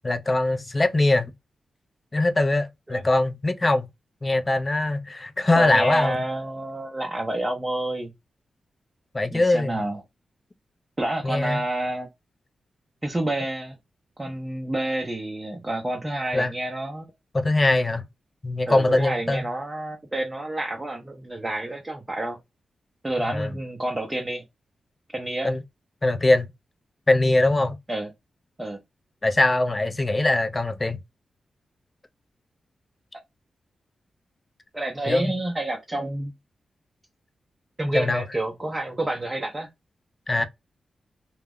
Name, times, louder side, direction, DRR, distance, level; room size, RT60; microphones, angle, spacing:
voice 1, 0.0-1.3 2.1-3.9 4.2-6.2 9.1-9.9 11.2-11.6 16.3-16.5 17.3-18.0 18.4-19.5 23.2-23.5 25.4-25.6 26.0-26.5 27.1-27.8 29.2-31.0 35.0-35.4 37.9-38.3 40.3-40.4, left 2 dB, 25° left, 0.4 m, -22 dB
voice 2, 5.6-8.1 9.3-10.0 11.0-12.1 13.0-13.8 14.2-17.1 18.7-22.4 23.0-24.4 25.1-25.5 27.9-28.1 28.6-28.8 34.7-36.3 37.8-39.7, right 1 dB, 20° right, 0.6 m, -29 dB
2.2 x 2.0 x 3.4 m
cardioid pair, 85°, 0 cm